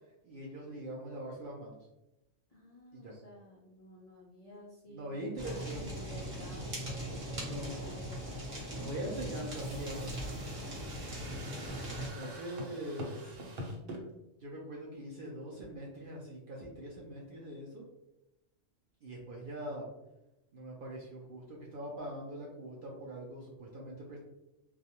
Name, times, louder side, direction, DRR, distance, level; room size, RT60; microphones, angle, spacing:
voice 1, 0.2-1.8 2.9-3.2 4.9-5.9 7.4-7.8 8.7-10.2 12.1-13.4 14.4-17.9 19.0-19.9 20.5-24.2, right 1 dB, 60° right, -3 dB, 0.5 m, -42 dB
voice 2, 2.5-8.2 9.0-9.7, left 1 dB, 60° left, -5 dB, 0.4 m, -52 dB
Fire, 5.4-12.1, equal, 40° right, 1.0 m, -40 dB
sound 1, 9.2-14.0, equal, 80° right, 1.0 m, -45 dB
2.3 x 2.2 x 2.8 m, 0.92 s
omnidirectional pair, 1.3 m